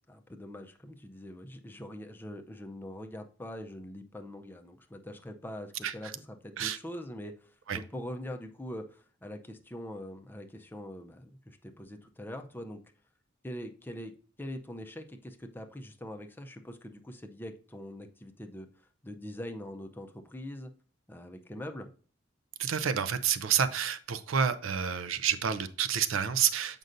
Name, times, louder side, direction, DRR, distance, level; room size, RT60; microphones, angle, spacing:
voice 1, 0.0-12.8 13.4-18.7 19.0-20.7 21.1-21.9, left 1 dB, 10° left, 0.5 m, -43 dB
voice 2, 22.6-26.8, right 8 dB, 75° right, 0.5 m, -29 dB
7.8 x 5.3 x 2.6 m
head